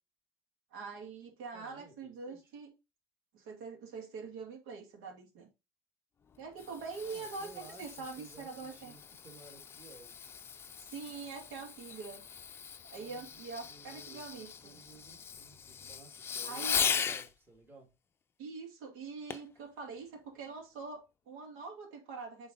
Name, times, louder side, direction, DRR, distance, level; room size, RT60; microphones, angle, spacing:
voice 1, 0.7-2.7 3.3-5.5 6.4-7.5 7.8-8.9 10.8-12.2 12.9-14.7 16.4-16.8 18.4-22.5, right 4 dB, 80° right, 2.4 m, -44 dB
voice 2, 1.5-2.5 7.1-10.4 13.0-17.9, right 3 dB, 20° right, 2.1 m, -57 dB
Fireworks, 6.3-17.3 19.3-19.6 20.2-20.3, left 7 dB, 25° left, 0.5 m, -39 dB
7.8 x 3.9 x 3.9 m
cardioid pair, 130°, 10 cm